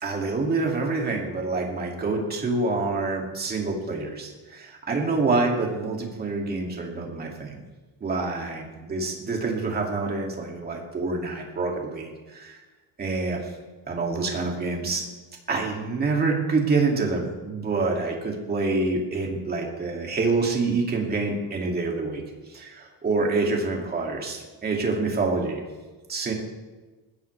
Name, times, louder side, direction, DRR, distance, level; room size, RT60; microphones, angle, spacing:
voice 1, 0.0-7.6 8.0-12.6 13.0-13.4 13.9-15.0 15.5-22.2 22.5-25.6 26.1-26.3, right 3 dB, 25° right, 0 dB, 2.5 m, -27 dB
20.5 x 15.5 x 3.4 m, 1.3 s
cardioid pair, 180°, 36 cm